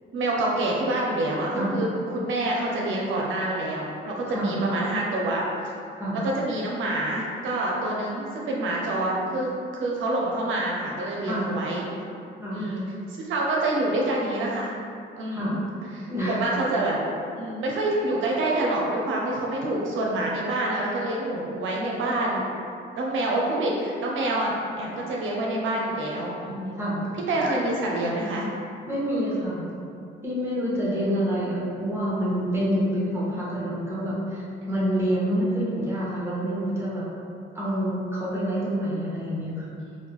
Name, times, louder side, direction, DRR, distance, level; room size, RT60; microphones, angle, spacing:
voice 1, 0.1-5.4 6.1-11.8 12.5-14.7 15.2-15.6 15.9-17.0 17.4-22.4 22.9-26.8 27.3-28.5 30.8-31.1 33.3-33.4 39.3-39.6, right 1 dB, 75° right, -3 dB, 0.5 m, -27 dB
voice 2, 16.1-16.4 26.8-27.0 28.9-29.6 30.2-37.0 37.5-39.7, equal, 10° right, -7 dB, 1.0 m, -27 dB
3.6 x 2.2 x 2.9 m, 2.5 s
cardioid pair, 90°, 20 cm